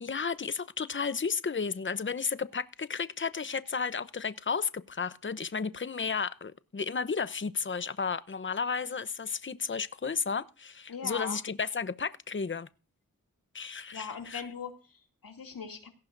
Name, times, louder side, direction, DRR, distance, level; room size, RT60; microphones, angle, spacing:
voice 1, 0.0-12.7 13.5-14.4, left 5 dB, 35° left, 0.9 m, -33 dB
voice 2, 10.9-11.4 13.9-15.9, left 6 dB, 90° left, 2.7 m, -40 dB
17.5 x 14.5 x 2.7 m
cardioid pair, 45°, 33 cm